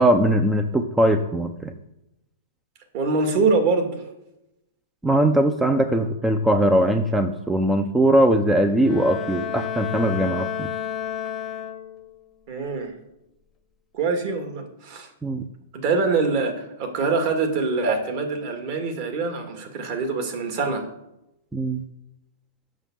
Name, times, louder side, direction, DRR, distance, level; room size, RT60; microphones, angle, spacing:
voice 1, 0.0-1.7 5.0-10.7 15.2-15.5 21.5-21.8, right 1 dB, 5° right, 7 dB, 0.5 m, -20 dB
voice 2, 2.9-4.0 12.5-13.0 13.9-15.1 15.7-20.9, right 4 dB, 45° right, 5 dB, 2.0 m, -24 dB
Bowed string instrument, 8.8-12.2, left 9 dB, 15° left, 0.9 m, -31 dB
7.4 x 6.3 x 7.3 m, 0.90 s
hypercardioid pair, 145°, 0 cm